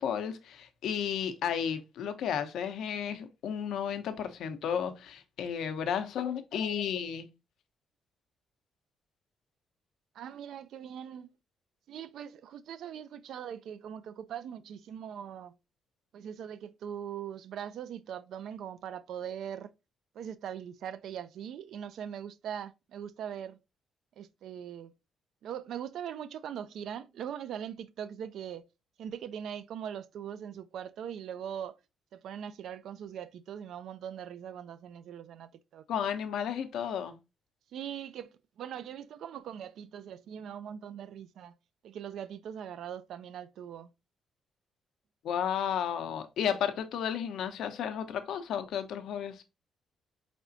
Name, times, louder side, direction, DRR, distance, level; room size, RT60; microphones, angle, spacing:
voice 1, 0.0-7.3 35.9-37.1 45.2-49.4, left 8 dB, 75° left, 0.7 m, -33 dB
voice 2, 10.1-11.3 11.9-15.6 16.1-19.7 20.1-23.6 24.2-24.9 25.4-28.7 29.0-31.8 32.1-35.8 37.7-41.5 41.8-43.9, right 9 dB, 75° right, 0.4 m, -41 dB
4.8 x 3.5 x 2.6 m
cardioid pair, 90°, 0 cm